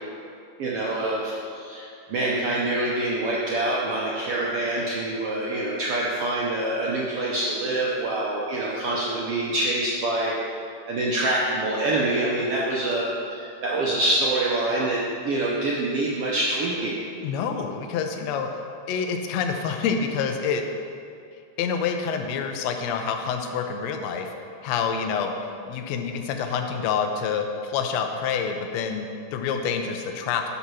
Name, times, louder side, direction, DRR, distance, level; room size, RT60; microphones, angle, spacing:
voice 1, 0.6-10.5 10.9-17.0, right 2 dB, 75° right, -4 dB, 1.4 m, -26 dB
voice 2, 17.2-18.5 18.9-20.6 21.6-24.3 24.6-25.3 25.7-30.5, left 6 dB, 75° left, 4 dB, 1.6 m, -27 dB
9.8 x 4.2 x 6.2 m, 2.4 s
omnidirectional pair, 3.6 m